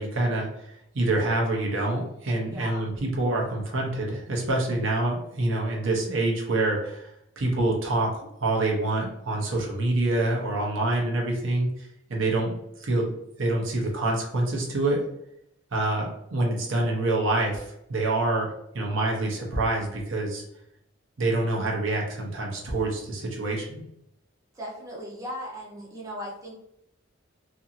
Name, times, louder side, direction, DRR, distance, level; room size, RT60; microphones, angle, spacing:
voice 1, 0.0-7.1 7.4-11.7 12.1-15.0 15.7-17.6 17.9-20.4 21.2-23.8, right 2 dB, 70° right, -1 dB, 0.7 m, -26 dB
voice 2, 2.5-2.9 24.5-26.5, equal, 15° right, -5 dB, 0.7 m, -37 dB
2.8 x 2.7 x 2.5 m, 0.77 s
head